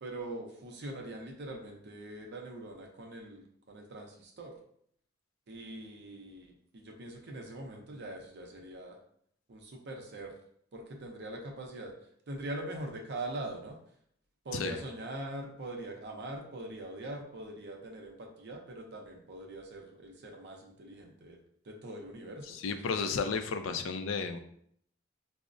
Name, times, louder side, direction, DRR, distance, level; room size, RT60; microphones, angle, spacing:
voice 1, 0.0-4.5 5.5-9.0 9.5-10.3 10.7-11.9 12.3-13.8 14.4-21.4 21.6-23.1, right 1 dB, 60° right, 1 dB, 0.6 m, -42 dB
voice 2, 22.5-24.4, left 5 dB, 70° left, 8 dB, 0.4 m, -33 dB
4.8 x 2.0 x 2.5 m, 0.66 s
head